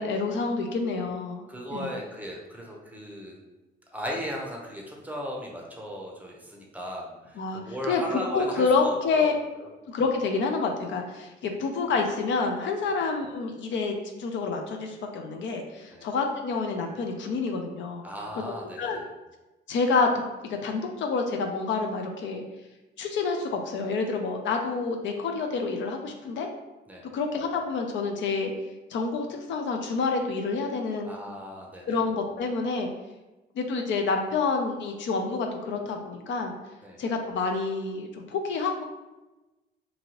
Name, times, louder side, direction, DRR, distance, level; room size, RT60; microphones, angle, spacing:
voice 1, 0.0-1.9 7.4-9.3 9.9-18.1 18.4-18.5 18.8-19.0 19.7-20.1 20.4-22.4 23.0-26.5 27.1-28.5 28.9-31.1 31.9-32.9 33.6-36.5 37.0-38.8, left 4 dB, 70° left, 3 dB, 0.5 m, -28 dB
voice 2, 1.5-3.4 3.9-9.3 9.6-9.7 12.8-12.9 15.9-16.1 18.0-19.0 26.9-27.0 31.1-32.0 36.8-37.0, equal, 10° right, -1 dB, 0.6 m, -37 dB
2.8 x 2.6 x 2.9 m, 1.1 s
cardioid pair, 90°, 20 cm